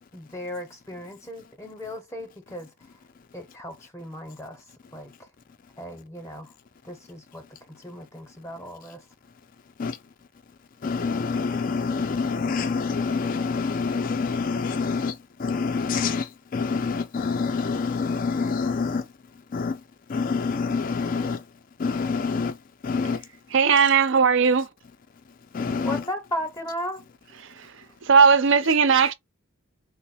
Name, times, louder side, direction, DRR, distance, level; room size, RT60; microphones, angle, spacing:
voice 1, 0.1-2.7 3.3-5.1 5.8-6.5 6.8-9.0 25.8-27.0, equal, 15° left, 0.7 m, -36 dB
voice 2, 10.8-19.1 19.5-19.8 20.1-21.5 21.8-23.3 25.5-26.0 28.9-29.0, left 4 dB, 40° left, 0.3 m, -27 dB
voice 3, 23.5-24.7 28.1-29.1, right 6 dB, 55° right, 0.5 m, -17 dB
3.1 x 2.0 x 4.1 m
head